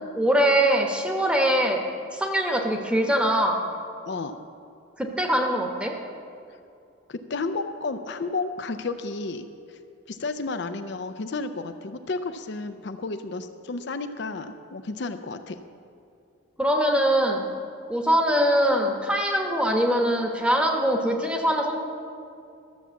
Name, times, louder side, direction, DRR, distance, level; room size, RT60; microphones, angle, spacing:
voice 1, 0.2-1.8 2.1-3.6 5.0-5.9 16.6-17.4 17.9-21.8, equal, 5° right, 2 dB, 1.0 m, -22 dB
voice 2, 7.1-9.8 10.1-15.6, left 3 dB, 55° left, 8 dB, 0.5 m, -32 dB
13.5 x 7.2 x 7.0 m, 2.6 s
head